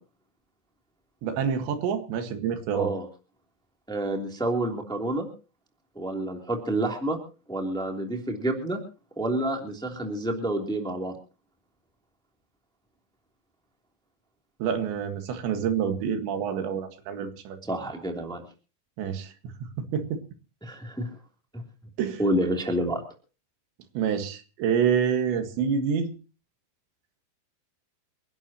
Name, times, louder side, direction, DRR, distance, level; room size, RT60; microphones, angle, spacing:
voice 1, 1.2-2.9 14.6-17.6 19.0-19.3 19.8-20.2 22.0-22.2 24.0-26.1, right 7 dB, 90° right, 6 dB, 4.1 m, -27 dB
voice 2, 2.7-3.1 3.9-5.3 5.9-7.2 7.5-8.8 9.2-11.1 17.6-18.4 20.6-21.1 22.2-23.0, right 1 dB, ahead, 2 dB, 2.1 m, -28 dB
28.5 x 11.5 x 3.0 m, 0.35 s
omnidirectional pair, 5.0 m